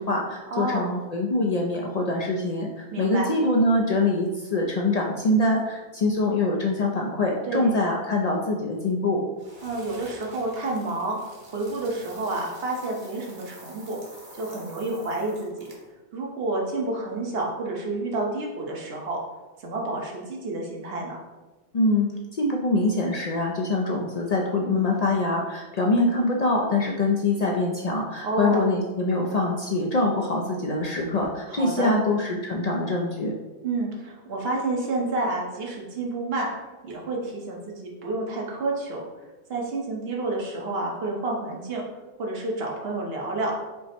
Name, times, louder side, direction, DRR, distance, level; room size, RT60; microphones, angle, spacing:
voice 1, 0.0-9.2 21.7-33.3, left 2 dB, 55° left, -1 dB, 0.4 m, -24 dB
voice 2, 0.5-0.9 2.9-3.3 7.4-7.7 9.6-11.2 11.5-14.0 14.4-15.7 16.1-19.2 19.6-21.2 28.2-28.7 31.5-31.9 33.6-36.5 36.8-39.0 39.5-41.8 42.2-43.5, right 2 dB, 65° right, -2 dB, 1.2 m, -29 dB
sound 1, 9.4-16.0, right 1 dB, 35° right, 1.0 m, -48 dB
5.3 x 2.1 x 4.3 m, 1.2 s
omnidirectional pair, 1.1 m